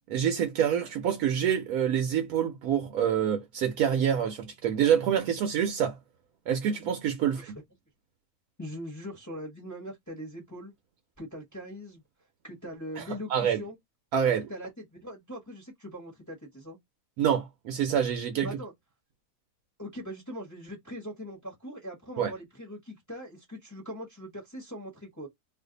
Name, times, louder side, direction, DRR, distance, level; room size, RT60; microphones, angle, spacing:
voice 1, 0.1-6.0 6.5-7.5 13.0-13.1 13.3-13.6 14.1-14.5 17.2-18.5 22.2-22.3, right 8 dB, 70° right, 1.0 m, -26 dB
voice 2, 7.2-7.5 8.6-10.7 11.2-12.0 12.4-13.8 14.5-16.8 18.4-18.7 19.8-25.3, equal, 15° left, 0.8 m, -41 dB
2.6 x 2.4 x 3.7 m
omnidirectional pair, 1.7 m